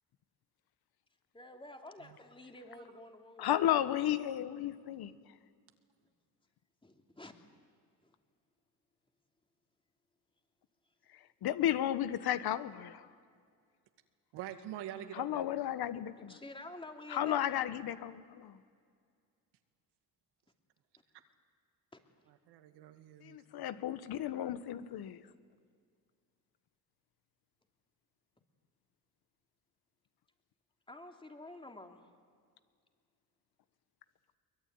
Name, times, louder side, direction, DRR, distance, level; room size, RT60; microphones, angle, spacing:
voice 1, 1.3-3.6 6.8-7.3 8.0-8.1 16.3-17.7 21.9-22.0 30.9-32.0, left 1 dB, 15° left, 4 dB, 3.0 m, -50 dB
voice 2, 3.4-5.1 11.4-13.1 15.2-16.3 17.1-18.6 23.2-25.2, left 11 dB, 70° left, 13 dB, 1.3 m, -33 dB
voice 3, 14.3-15.5 22.3-23.7, right 11 dB, 85° right, 8 dB, 2.1 m, -46 dB
23.0 x 22.0 x 9.6 m, 2.1 s
cardioid pair, 90°, 40 cm